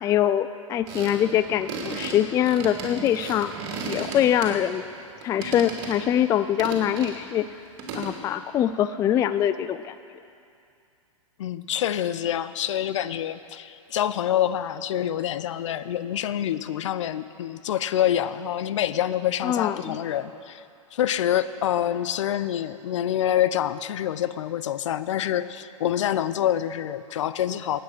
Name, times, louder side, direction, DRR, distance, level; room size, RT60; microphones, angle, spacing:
voice 1, 0.0-3.5 3.9-4.8 5.2-7.5 7.9-10.0 19.4-20.0, left 10 dB, 20° left, 13 dB, 0.3 m, -23 dB
sound 1, 0.9-4.9 5.2-6.1 6.6-7.2 7.8-8.2, right 4 dB, 45° right, 3.0 m, -35 dB
voice 2, 11.4-20.6 20.9-27.8, left 11 dB, 65° left, 14 dB, 0.6 m, -26 dB
16.0 x 9.5 x 6.1 m, 2.5 s
hypercardioid pair, 110°, 17 cm